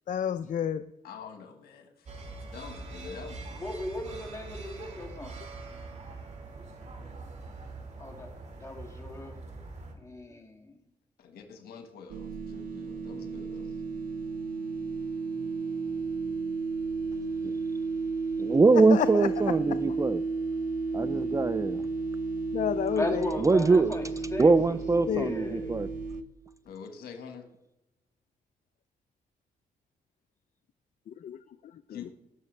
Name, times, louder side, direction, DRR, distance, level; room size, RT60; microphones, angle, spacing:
voice 1, 0.1-0.9 18.7-19.8 22.5-23.3 25.1-25.4 31.1-31.4, left 9 dB, 55° left, 0.4 m, -30 dB
voice 2, 1.0-2.1 2.5-3.7 11.2-13.8 26.6-27.5 31.9-32.1, left 6 dB, 85° left, 1.5 m, -45 dB
sound 1, 2.1-9.9, right 3 dB, 50° right, 2.2 m, -43 dB
voice 3, 3.6-5.4 8.0-8.3 8.6-9.4 10.0-10.8 19.0-19.1 23.0-24.0 24.3-24.8 25.1-25.7, left 1 dB, 20° left, 2.4 m, -36 dB
sound 2, 12.1-26.2, right 4 dB, 65° right, 0.7 m, -33 dB
voice 4, 18.4-20.2 20.9-21.9 23.4-23.9 24.4-25.9, right 3 dB, 20° right, 0.4 m, -23 dB
19.0 x 6.5 x 3.3 m
cardioid pair, 65°, 16 cm